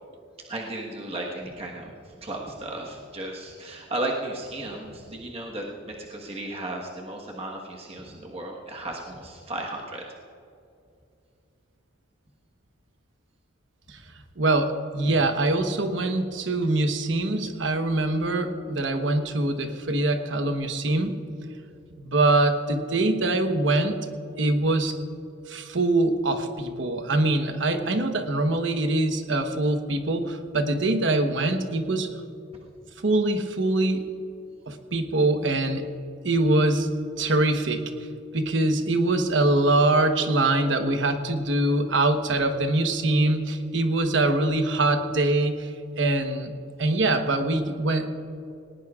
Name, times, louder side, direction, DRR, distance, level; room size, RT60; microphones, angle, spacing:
voice 1, 0.5-10.0, right 1 dB, 30° right, -1 dB, 1.3 m, -35 dB
voice 2, 14.4-21.2 21.9-24.0 24.4-25.0 25.5-32.1 33.0-34.0 34.7-35.8 36.2-36.9 37.2-37.8 38.3-46.5 46.8-48.1, right 2 dB, 65° right, 6 dB, 1.1 m, -23 dB
19.0 x 19.0 x 2.4 m, 2.5 s
head